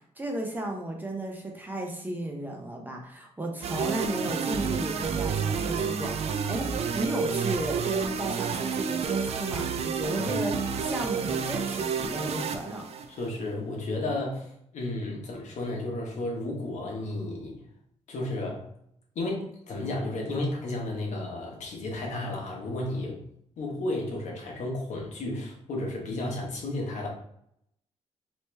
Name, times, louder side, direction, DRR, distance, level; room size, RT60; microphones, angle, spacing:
voice 1, 0.2-6.7 6.9-12.8, right 1 dB, 15° right, 1 dB, 0.6 m, -34 dB
sound 1, 3.6-13.3, right 6 dB, 60° right, 0.4 m, -30 dB
voice 2, 10.1-10.5 13.1-17.6 18.1-18.7 19.1-23.2 23.6-27.1, left 2 dB, 75° left, -1 dB, 1.1 m, -33 dB
3.1 x 3.0 x 3.3 m, 0.72 s
cardioid pair, 120°, 12 cm